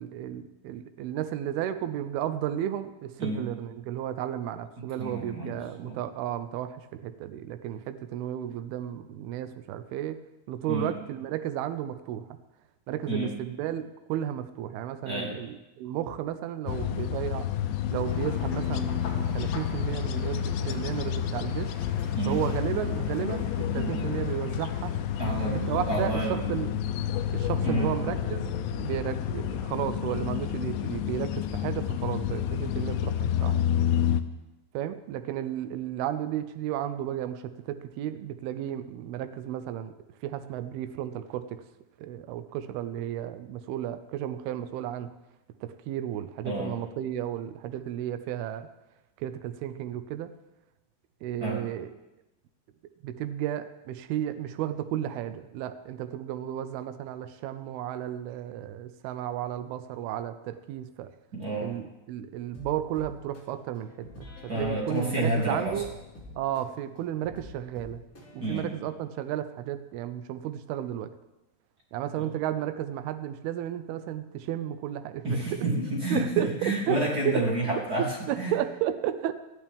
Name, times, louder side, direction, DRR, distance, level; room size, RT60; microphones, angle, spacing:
voice 1, 0.0-10.2 10.5-12.4 12.9-17.5 17.9-21.7 22.3-24.9 25.5-26.7 27.3-28.5 28.8-33.6 34.7-39.9 40.2-41.6 42.0-45.1 45.6-48.7 49.2-50.3 51.2-51.9 53.0-61.1 61.6-64.3 64.5-65.9 66.4-68.0 68.3-71.1 71.9-75.6 76.1-77.4 78.3-79.3, right 11 dB, 85° right, 10 dB, 2.2 m, -33 dB
voice 2, 4.8-6.0 10.7-10.9 13.1-13.3 15.0-15.4 16.8-16.9 22.1-22.4 23.8-24.1 25.2-26.6 27.6-27.9 46.4-46.8 51.4-51.7 61.3-61.7 64.5-65.8 68.4-68.7 72.2-72.3 75.2-78.5, right 1 dB, 25° right, -4 dB, 2.4 m, -30 dB
sound 1, 16.7-34.2, left 10 dB, 85° left, 3.0 m, -29 dB
sound 2, 18.0-26.0, left 4 dB, 60° left, 3.4 m, -43 dB
sound 3, 62.5-68.6, left 2 dB, 20° left, 2.9 m, -47 dB
19.5 x 13.0 x 3.6 m, 0.99 s
omnidirectional pair, 5.3 m